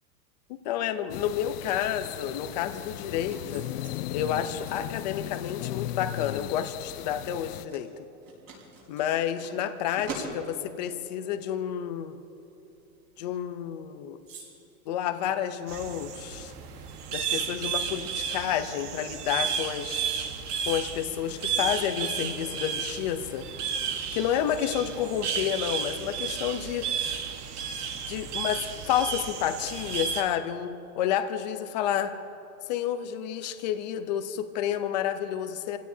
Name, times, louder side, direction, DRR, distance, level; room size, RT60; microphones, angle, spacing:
voice 1, 0.5-3.7 4.1-7.9 8.9-12.2 13.2-14.2 14.9-16.5 17.1-20.1 20.7-23.5 24.1-26.9 28.1-30.7 30.9-32.1 32.7-35.8, left 10 dB, 30° left, 8 dB, 0.6 m, -30 dB
sound 1, 1.1-7.6, left 15 dB, 85° left, 0.6 m, -37 dB
sound 2, 2.4-16.1, right 3 dB, 30° right, 4.7 m, -47 dB
sound 3, 15.7-30.2, right 7 dB, 80° right, 1.6 m, -33 dB
29.0 x 16.5 x 2.8 m, 2.9 s
supercardioid pair, 175°, 46 cm